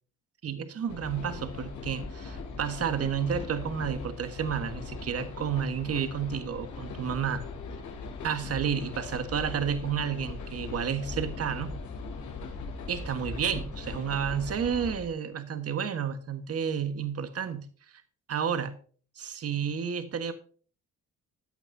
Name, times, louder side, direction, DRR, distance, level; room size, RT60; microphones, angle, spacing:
voice 1, 0.4-7.4 8.2-11.7 12.9-17.7 18.3-18.8 19.2-20.3, right 7 dB, 50° right, 10 dB, 1.4 m, -31 dB
sound 1, 0.9-15.1, left 3 dB, 70° left, 3.1 m, -39 dB
14.0 x 9.0 x 2.7 m, 0.42 s
cardioid pair, 90°, 30 cm